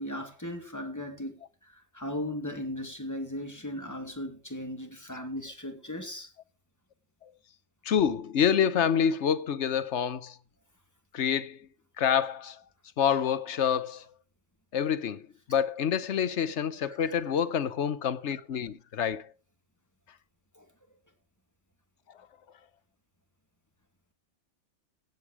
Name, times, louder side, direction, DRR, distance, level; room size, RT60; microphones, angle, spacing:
voice 1, 0.0-6.3 16.9-17.0 20.6-20.7, left 1 dB, 15° left, 2.4 m, -37 dB
voice 2, 7.8-10.4 11.1-11.7 12.0-12.6 13.0-14.1 14.7-19.3, left 8 dB, 80° left, 1.2 m, -27 dB
17.0 x 8.1 x 4.8 m
omnidirectional pair, 1.2 m